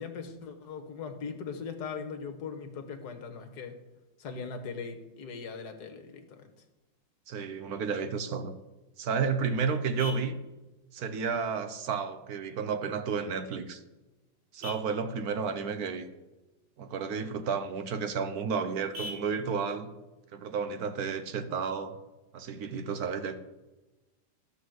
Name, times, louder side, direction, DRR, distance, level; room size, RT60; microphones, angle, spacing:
voice 1, 0.0-3.8 4.2-6.5, left 5 dB, 50° left, 5 dB, 1.7 m, -40 dB
voice 2, 7.3-8.5 9.0-10.4 10.9-13.8 14.5-16.1 16.8-19.9 20.3-22.0 22.3-23.4, right 5 dB, 65° right, 10 dB, 1.0 m, -32 dB
Vehicle horn car horn honking, 8.7-21.7, left 2 dB, 85° right, 2.9 m, -51 dB
12.5 x 5.5 x 7.8 m, 1.1 s
omnidirectional pair, 2.3 m